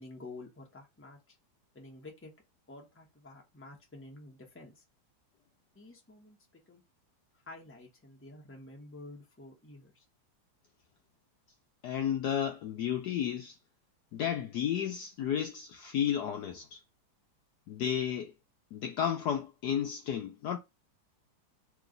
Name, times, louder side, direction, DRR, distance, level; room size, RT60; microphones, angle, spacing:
voice 1, 0.0-1.4 1.7-2.3 2.7-4.8 5.7-6.4 6.7-6.8 7.3-10.1, left 2 dB, 15° left, 0.4 m, -50 dB
voice 2, 11.8-13.6 14.1-16.8 17.7-18.3 18.7-20.6, left 9 dB, 75° left, 1.0 m, -32 dB
3.1 x 3.1 x 3.8 m
omnidirectional pair, 2.2 m